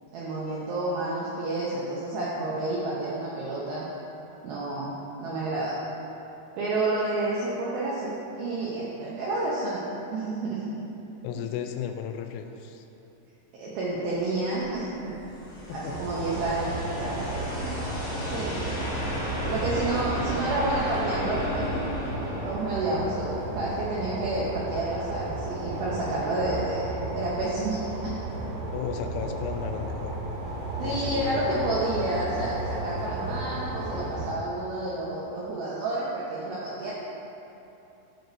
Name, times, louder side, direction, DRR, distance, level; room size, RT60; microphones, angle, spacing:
voice 1, 0.1-3.9 4.4-4.9 5.2-5.8 6.6-10.7 11.4-11.5 13.5-15.1 15.7-17.8 18.3-18.7 19.5-21.7 22.3-28.5 30.8-36.9, right 2 dB, 85° right, -6 dB, 2.1 m, -30 dB
voice 2, 11.2-12.8 15.7-15.9 28.7-30.1 30.8-31.5, left 8 dB, 85° left, 6 dB, 3.0 m, -34 dB
sound 1, 14.3-22.5, left 1 dB, 50° left, 1.8 m, -34 dB
sound 2, 15.9-34.3, right 1 dB, 70° right, 3.1 m, -34 dB
12.0 x 6.1 x 2.6 m, 2.9 s
omnidirectional pair, 5.4 m